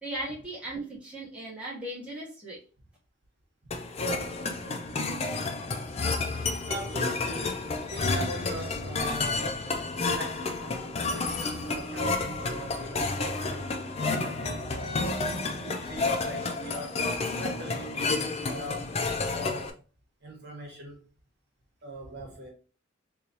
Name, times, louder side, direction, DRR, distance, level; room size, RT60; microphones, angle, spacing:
voice 1, 0.0-2.6, right 1 dB, 5° right, 1.2 m, -37 dB
sound 1, 3.7-19.7, left 3 dB, 30° left, 0.4 m, -30 dB
voice 2, 6.6-7.6 7.9-9.6 9.9-10.8 11.0-13.8 14.2-17.1 17.4-19.0 19.3-19.8 20.2-21.0 21.8-22.5, right 1 dB, 55° right, 1.2 m, -41 dB
3.8 x 3.0 x 2.9 m
head